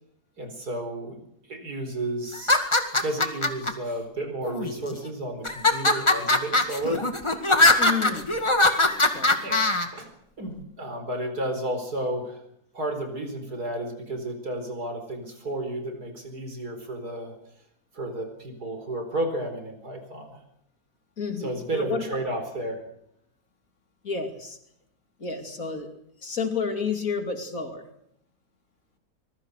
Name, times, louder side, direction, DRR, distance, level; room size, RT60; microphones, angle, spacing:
voice 1, 0.4-1.2 1.5-2.6 2.9-7.0 9.4-9.7 9.9-10.1 10.4-12.4 12.7-17.4 17.9-20.4 21.4-22.8, right 1 dB, 75° right, 6 dB, 5.2 m, -32 dB
sound 1, 2.3-3.7 4.4-5.0 5.4-9.9, left 2 dB, 20° left, 2.1 m, -21 dB
voice 2, 7.8-8.4 9.1-9.4 21.2-22.0 24.0-24.6 25.2-25.9 26.2-27.9, left 5 dB, 60° left, 6 dB, 3.1 m, -30 dB
24.5 x 21.5 x 6.6 m, 0.72 s
omnidirectional pair, 1.7 m